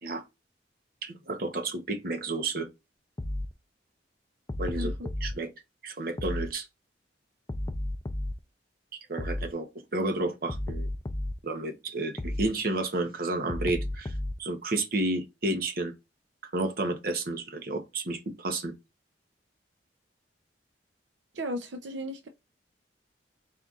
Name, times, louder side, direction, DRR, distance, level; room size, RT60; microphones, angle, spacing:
voice 1, 1.0-2.7 4.6-4.9 5.2-5.5 5.8-6.7 9.1-9.7 9.9-10.9 11.4-14.1 14.4-15.9 16.5-18.7, right 2 dB, 55° right, 0.9 m, -31 dB
sound 1, 3.2-3.5 4.5-5.3 6.2-6.5 7.5-8.4 9.2-9.5 10.5-11.4 12.2-12.5 13.5-14.4, left 1 dB, 20° left, 0.3 m, -32 dB
voice 2, 21.3-22.3, equal, 80° right, 0.6 m, -35 dB
4.3 x 3.9 x 2.4 m
head